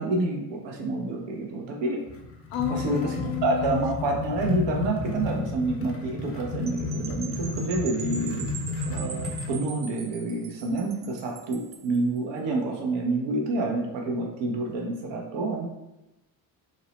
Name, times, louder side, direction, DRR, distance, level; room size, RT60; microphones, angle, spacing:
voice 1, 0.0-2.0 2.7-3.1 3.4-15.7, right 2 dB, 70° right, 0 dB, 0.8 m, -28 dB
sound 1, 2.1-9.6, left 3 dB, 30° left, 0.5 m, -32 dB
voice 2, 2.5-3.7, left 11 dB, 80° left, 5 dB, 0.5 m, -31 dB
sound 2, 6.7-12.0, right 6 dB, 35° right, 0.4 m, -41 dB
2.6 x 2.0 x 2.9 m, 0.94 s
supercardioid pair, 65°, 45 cm